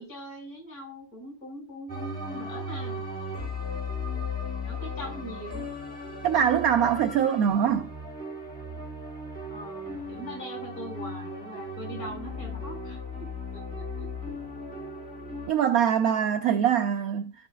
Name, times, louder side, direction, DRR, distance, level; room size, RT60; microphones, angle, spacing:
voice 1, 0.0-3.0 4.6-5.6 9.5-14.3, equal, 45° left, 5.7 m, -41 dB
sound 1, 1.9-15.5, left 2 dB, 5° left, 1.9 m, -36 dB
voice 2, 6.2-7.9 15.5-17.3, right 9 dB, 70° right, 0.8 m, -23 dB
15.5 x 5.7 x 2.3 m
omnidirectional pair, 2.2 m